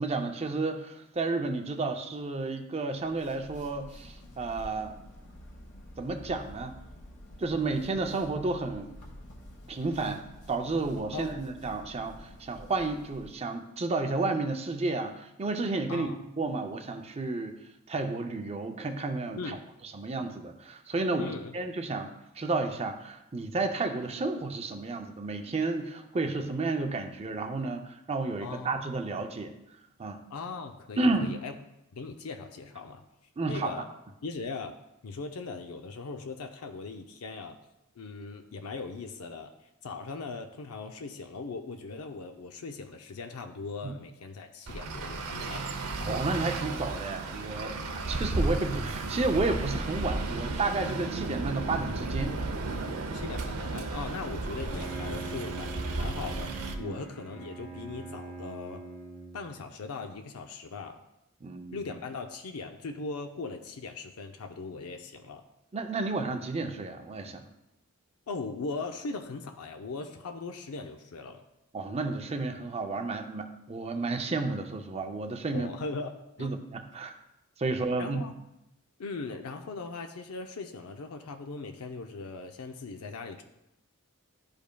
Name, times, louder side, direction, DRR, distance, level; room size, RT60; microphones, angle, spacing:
voice 1, 0.0-5.0 6.0-6.7 7.4-8.9 9.7-16.1 16.4-17.6 17.9-19.6 19.9-22.1 22.4-29.5 30.0-30.2 31.0-31.4 33.4-33.7 43.8-43.9 46.0-47.8 48.1-52.4 56.8-56.9 61.4-61.8 65.7-67.5 71.7-75.7 76.4-77.1 77.6-78.3, right 3 dB, 30° right, 6 dB, 0.5 m, -31 dB
sound 1, 3.0-13.5, left 1 dB, 50° left, 1.4 m, -49 dB
voice 2, 11.1-11.4 15.9-16.2 19.4-19.6 21.2-21.5 21.9-22.0 28.4-28.7 30.3-31.5 31.9-33.0 33.5-33.9 34.2-34.8 35.0-37.6 38.0-39.5 39.8-45.7 53.1-58.8 59.3-61.0 61.7-65.4 68.3-71.4 75.5-76.6 78.0-78.3 79.0-83.4, left 4 dB, 75° left, 5 dB, 0.5 m, -39 dB
Traffic noise roadway noise, 44.7-56.7, right 2 dB, 80° right, 0.7 m, -34 dB
Bowed string instrument, 54.7-59.6, right 3 dB, 10° left, 0.8 m, -43 dB
11.5 x 5.1 x 2.2 m, 0.87 s
head